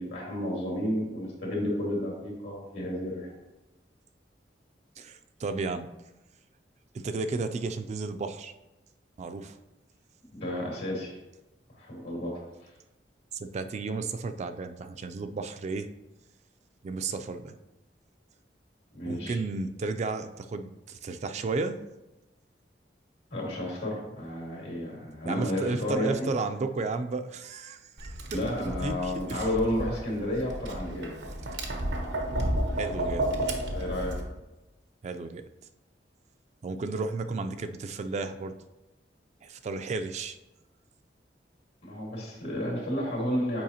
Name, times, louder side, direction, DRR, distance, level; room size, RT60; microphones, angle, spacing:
voice 1, 0.0-3.3 10.3-11.2 11.7-12.4 18.9-19.4 23.3-26.3 28.3-31.1 33.7-34.2 41.8-43.6, left 1 dB, 80° left, -3 dB, 2.2 m, -31 dB
voice 2, 5.0-5.9 6.9-8.5 9.2-9.6 13.3-15.9 16.8-17.6 19.0-21.8 25.2-28.2 28.6-29.5 32.8-33.3 35.0-35.5 36.6-38.5 39.4-40.4, right 3 dB, 40° right, 9 dB, 0.3 m, -33 dB
Tap, 28.0-34.2, right 1 dB, 85° right, 0.8 m, -32 dB
7.5 x 4.8 x 2.8 m, 0.99 s
head